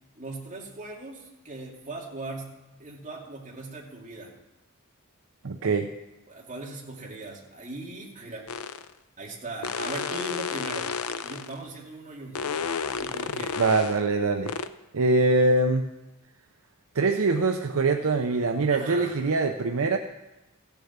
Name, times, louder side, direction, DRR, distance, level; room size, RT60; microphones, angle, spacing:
voice 1, 0.1-4.3 6.3-8.5 9.2-10.9 11.2-12.5 13.0-13.6 18.7-19.3, right 2 dB, 35° right, -2 dB, 2.5 m, -39 dB
voice 2, 5.4-5.9 13.6-14.5 14.9-15.9 16.9-20.0, right 3 dB, 65° right, 5 dB, 0.7 m, -23 dB
sound 1, 8.5-8.9 9.6-11.6 12.4-14.0 14.5-14.7, left 6 dB, 75° left, 0.6 m, -32 dB
15.5 x 7.0 x 7.2 m, 1.0 s
head